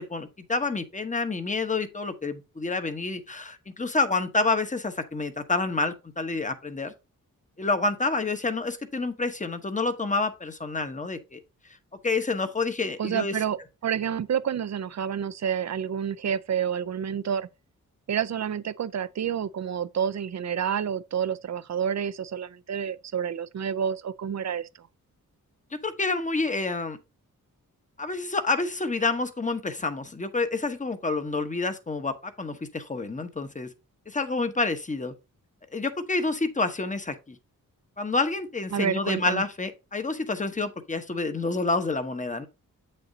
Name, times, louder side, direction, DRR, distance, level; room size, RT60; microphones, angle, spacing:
voice 1, 0.0-6.9 7.6-11.4 12.0-13.4 25.7-27.0 28.0-33.7 34.1-35.1 35.7-37.4 38.0-42.5, left 3 dB, 20° left, 1.0 m, -28 dB
voice 2, 13.0-17.5 18.1-24.7 38.7-39.4, right 8 dB, 55° right, 0.6 m, -29 dB
7.8 x 6.7 x 2.7 m
wide cardioid pair, 90°, 33 cm